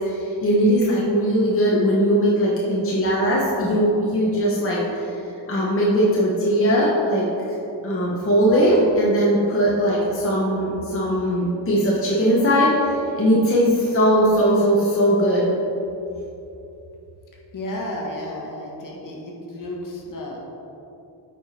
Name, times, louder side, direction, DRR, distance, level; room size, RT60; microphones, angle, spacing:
voice 1, 0.0-5.0 5.5-7.3 7.8-15.4, equal, 30° left, -5 dB, 1.2 m, -19 dB
voice 2, 17.5-20.4, left 1 dB, 50° left, -2 dB, 1.7 m, -32 dB
8.9 x 5.1 x 4.3 m, 2.9 s
cardioid pair, 110°, 41 cm